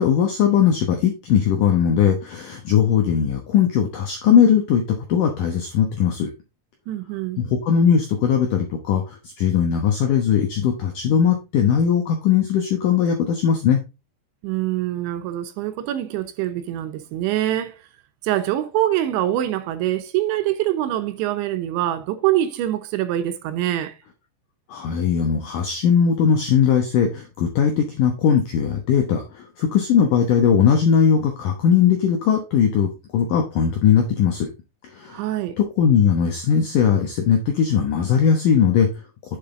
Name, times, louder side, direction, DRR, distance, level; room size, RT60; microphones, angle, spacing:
voice 1, 0.0-6.3 7.4-13.8 24.7-34.5 34.9-35.2 35.6-38.9, left 7 dB, 80° left, 1.8 m, -19 dB
voice 2, 6.9-7.4 14.4-17.9 18.2-23.9 35.1-35.6, right 13 dB, 80° right, 3.0 m, -24 dB
7.6 x 7.1 x 3.7 m
omnidirectional pair, 5.4 m